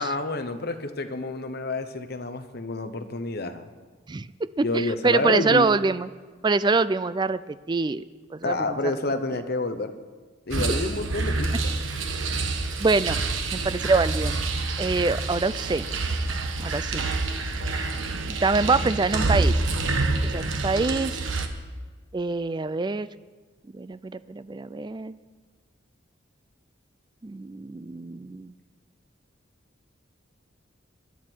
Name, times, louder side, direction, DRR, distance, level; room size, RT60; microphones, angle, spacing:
voice 1, 0.0-3.7 4.6-5.7 8.4-9.9 10.5-11.7, left 2 dB, 50° left, 8 dB, 1.0 m, -29 dB
voice 2, 4.1-6.1 6.4-8.0 8.3-8.8 10.6-10.7 12.8-13.2 13.5-14.4 14.8-15.9 16.6-17.0 18.3-19.6 20.2-21.2 22.1-23.1 23.7-25.2 27.2-28.5, right 3 dB, 20° right, 15 dB, 0.3 m, -25 dB
sound 1, 10.5-21.5, right 3 dB, 75° right, 1.3 m, -27 dB
23.0 x 11.5 x 4.6 m, 1.4 s
head